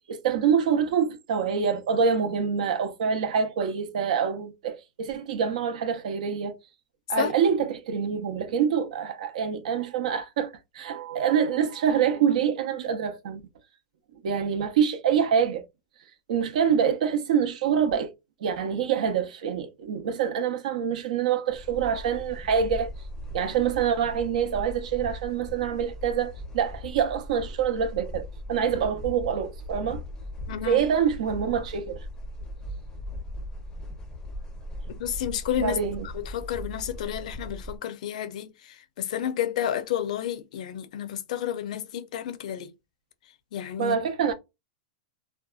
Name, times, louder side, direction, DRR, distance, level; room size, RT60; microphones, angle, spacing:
voice 1, 0.1-6.5 7.1-13.4 14.2-15.6 16.3-18.1 18.4-22.9 23.3-30.0 30.6-32.0 35.6-36.1 43.8-44.3, right 7 dB, 70° right, 0.6 m, -26 dB
sound 1, 21.5-37.8, left 1 dB, 15° left, 0.5 m, -39 dB
voice 2, 30.5-30.8 35.0-35.8 36.1-38.5 39.0-42.7 43.5-44.0, left 10 dB, 65° left, 0.5 m, -30 dB
2.6 x 2.2 x 2.3 m
supercardioid pair, 145°, 4 cm